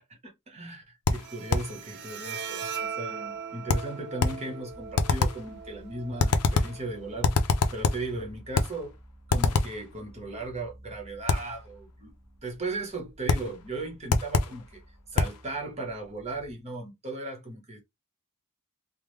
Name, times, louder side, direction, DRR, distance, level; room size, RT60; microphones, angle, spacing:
voice 1, 0.2-7.4 7.7-8.9 9.3-12.1 12.4-14.8 15.1-17.8, right 2 dB, 30° right, 1.0 m, -37 dB
sound 1, 1.1-1.8 3.7-4.5 5.0-5.5 6.2-6.8 7.2-8.1 8.5-8.8 9.3-9.8 11.3-11.6 13.3-13.6 14.1-14.6 15.2-15.4, left 4 dB, 90° left, 0.5 m, -25 dB
Bowed string instrument, 1.1-8.1, right 6 dB, 50° right, 0.5 m, -40 dB
sound 2, 4.7-16.5, equal, 15° left, 1.1 m, -52 dB
3.5 x 2.0 x 3.1 m
head